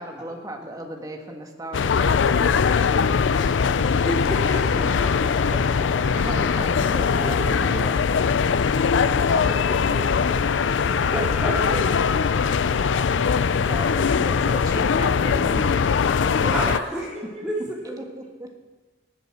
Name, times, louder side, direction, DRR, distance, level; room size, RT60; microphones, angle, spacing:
voice 1, 0.0-3.7 4.8-4.9 6.2-8.0 8.8-9.0 13.4-16.8 17.2-18.5, right 1 dB, 20° right, 3 dB, 1.7 m, -37 dB
sound 1, 1.7-16.8, left 6 dB, 80° left, 0.4 m, -21 dB
voice 2, 3.3-6.2 6.5-6.6 7.1-7.9 9.2-10.4 10.9-12.3 16.5-17.1 17.4-17.5 17.8-18.1, right 1 dB, 5° right, -5 dB, 3.8 m, -32 dB
Explosion, 4.1-8.2, equal, 55° left, 4.3 m, -41 dB
voice 3, 10.5-11.2 11.7-13.9 16.2-16.8 17.1-17.6, right 1 dB, 40° right, -4 dB, 4.6 m, -41 dB
19.0 x 8.1 x 6.2 m, 1.3 s
head